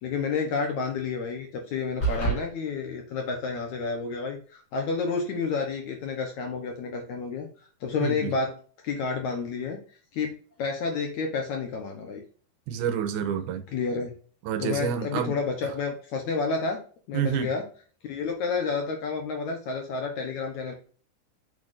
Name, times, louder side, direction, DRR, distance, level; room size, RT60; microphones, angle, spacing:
voice 1, 0.0-7.5 7.8-8.6 8.8-9.8 10.1-12.2 13.7-14.2 14.6-16.8 17.1-17.7 18.0-20.7, left 4 dB, 65° left, 2.0 m, -30 dB
sound 1, 2.0-2.4, right 4 dB, 30° left, 3.1 m, -25 dB
voice 2, 8.0-8.3 12.7-13.6 14.5-15.4 17.1-17.5, right 9 dB, 80° right, 2.7 m, -28 dB
6.8 x 6.5 x 2.6 m
omnidirectional pair, 4.5 m